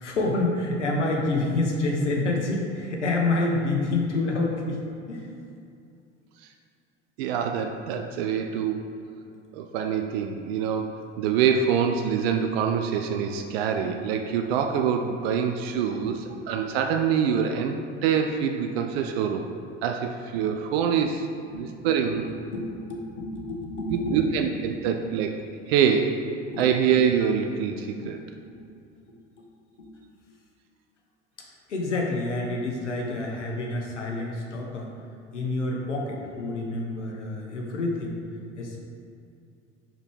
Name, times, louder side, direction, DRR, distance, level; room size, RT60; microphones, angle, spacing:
voice 1, 0.0-4.8 5.1-5.3 15.9-16.1 20.9-21.0 21.5-21.7 22.0-24.3 26.5-26.7 28.0-28.2 28.5-28.7 29.1-29.5 29.8-30.0 31.7-34.9 35.3-38.2 38.6-38.9, left 2 dB, 80° left, -1 dB, 1.1 m, -28 dB
voice 2, 7.2-9.0 9.5-17.8 18.0-19.5 19.8-21.3 21.5-22.3 23.9-26.3 26.6-28.2, right 7 dB, 60° right, 4 dB, 0.6 m, -25 dB
5.2 x 4.4 x 4.6 m, 2.5 s
figure-of-eight pair, 70°, 35 cm